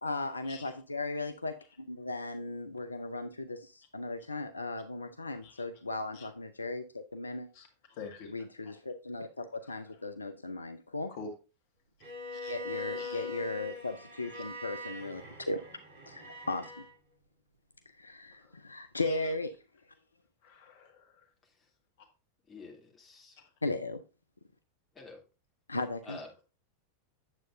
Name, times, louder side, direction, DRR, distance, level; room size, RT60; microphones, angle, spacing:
voice 1, 0.0-7.5 8.3-11.1 12.5-15.2 15.5-15.6 16.1-16.8 17.9-19.5 23.6-24.0 25.7-26.2, left 2 dB, 85° left, 9 dB, 0.5 m, -37 dB
voice 2, 7.5-8.3 11.1-11.3 12.3-12.6 13.0-13.3 14.3-14.4 18.4-18.5 19.0-19.2 20.4-21.1, left 4 dB, 55° left, 4 dB, 1.8 m, -47 dB
Bowed string instrument, 12.0-16.9, left 2 dB, 55° right, 3.7 m, -42 dB
voice 3, 22.5-23.4 24.9-25.2 26.0-26.4, left 2 dB, 20° left, -1 dB, 2.8 m, -49 dB
9.1 x 7.6 x 2.6 m, 0.31 s
figure-of-eight pair, 90°, 0 cm